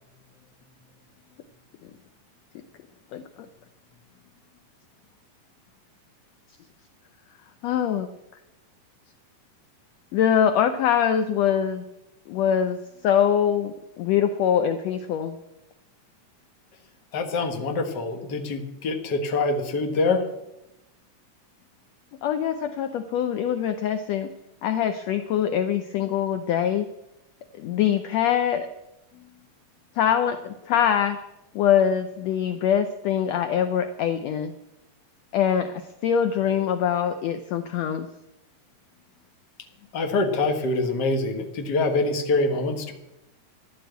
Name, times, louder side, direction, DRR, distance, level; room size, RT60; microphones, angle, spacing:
voice 1, 7.6-8.1 10.1-11.8 12.3-12.8 13.0-15.4 22.2-24.3 24.6-26.9 27.6-28.7 30.0-31.2 31.5-34.5 35.3-35.7 36.0-38.1, left 9 dB, 75° left, 9 dB, 1.6 m, -23 dB
voice 2, 17.1-20.2 39.9-42.9, left 3 dB, 40° left, 4 dB, 1.6 m, -25 dB
14.0 x 11.5 x 8.1 m, 0.92 s
omnidirectional pair, 3.9 m